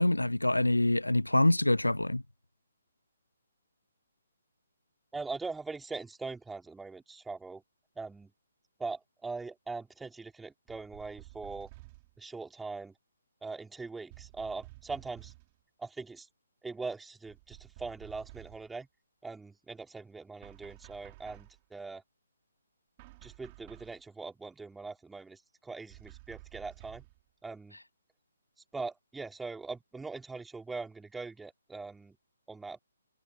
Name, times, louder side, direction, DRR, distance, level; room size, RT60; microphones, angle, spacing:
voice 1, 0.0-2.2, left 1 dB, 85° left, 0.4 m, -25 dB
voice 2, 5.1-7.6 8.0-8.3 8.8-11.7 12.2-12.9 13.4-15.3 15.8-16.3 16.6-18.9 19.2-22.0 23.2-27.0 27.4-27.8 28.7-32.2 32.5-32.8, right 4 dB, 5° right, 3.6 m, -41 dB
sound 1, 10.7-12.2 14.1-15.6 17.3-18.8 20.4-21.6 23.0-24.0 25.9-27.2, right 22 dB, 30° right, 5.2 m, -52 dB
figure-of-eight pair, 135°, 0 cm